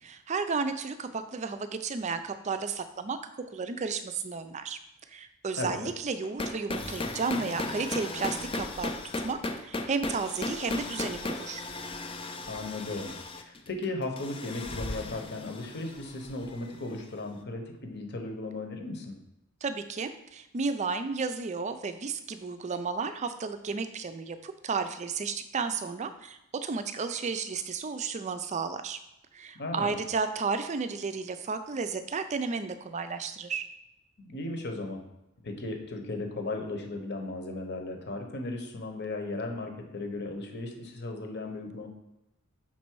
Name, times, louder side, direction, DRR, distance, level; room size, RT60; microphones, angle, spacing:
voice 1, 0.0-4.8 5.1-8.9 9.2-11.6 19.6-29.0 29.3-33.7, right 4 dB, 30° right, 10 dB, 0.4 m, -33 dB
voice 2, 5.6-5.9 12.5-19.1 29.5-30.0 34.2-35.0 35.4-41.9, left 2 dB, 50° left, 3 dB, 1.0 m, -36 dB
sound 1, 6.2-17.0, left 2 dB, 25° left, 0.5 m, -36 dB
5.9 x 4.2 x 4.6 m, 0.87 s
head